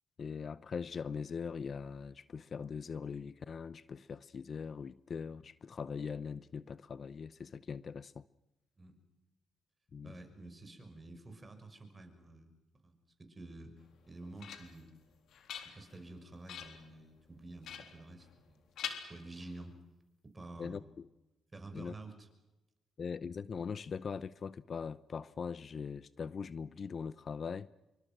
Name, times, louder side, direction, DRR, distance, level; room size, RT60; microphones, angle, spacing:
voice 1, 0.2-8.2 9.9-10.2 20.6-21.0 21.7-21.9 23.0-27.7, left 6 dB, 45° left, 0.7 m, -41 dB
voice 2, 10.0-12.5 12.8-13.7 14.1-14.9 15.6-18.7 19.1-19.8 20.2-20.8 21.5-22.3, right 2 dB, 20° right, 6.1 m, -50 dB
sound 1, 13.9-14.9 15.3-16.1 16.5-16.9 17.6-18.5 18.8-19.7, left 8 dB, 70° left, 3.6 m, -45 dB
27.0 x 24.5 x 6.2 m
cardioid pair, 90°, 0 cm